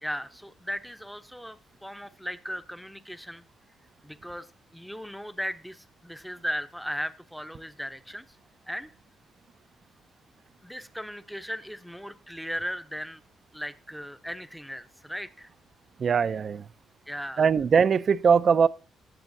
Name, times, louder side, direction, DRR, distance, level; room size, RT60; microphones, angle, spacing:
voice 1, 0.0-3.4 4.0-8.4 8.7-8.9 10.6-13.2 13.5-15.5 17.1-17.4, equal, ahead, 0.7 m, -37 dB
voice 2, 16.0-16.7 17.4-18.7, right 6 dB, 50° right, 0.4 m, -21 dB
17.5 x 7.2 x 2.7 m
cardioid pair, 90°, 0 cm